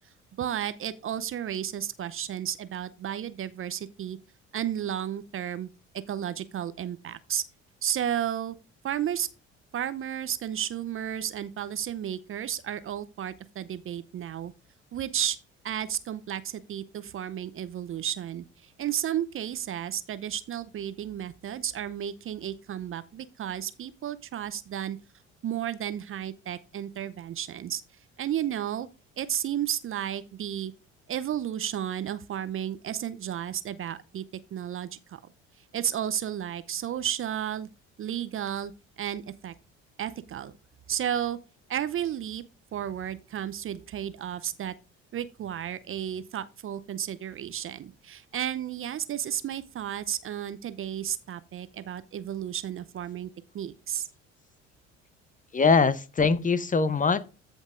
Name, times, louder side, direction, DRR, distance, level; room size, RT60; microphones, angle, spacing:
voice 1, 0.4-4.2 4.5-5.7 6.1-7.4 7.8-8.6 8.8-9.3 9.7-14.5 14.9-15.4 15.6-25.0 25.4-27.8 28.2-28.9 29.2-30.7 31.1-34.2 34.5-35.2 35.7-37.7 38.0-38.7 39.0-39.5 40.0-40.5 40.9-41.4 41.7-42.4 42.7-44.7 45.1-54.1, right 10 dB, 35° right, 0.6 m, -33 dB
voice 2, 55.5-57.2, left 4 dB, 20° left, 0.8 m, -22 dB
14.0 x 5.3 x 2.5 m
figure-of-eight pair, 55°, 36 cm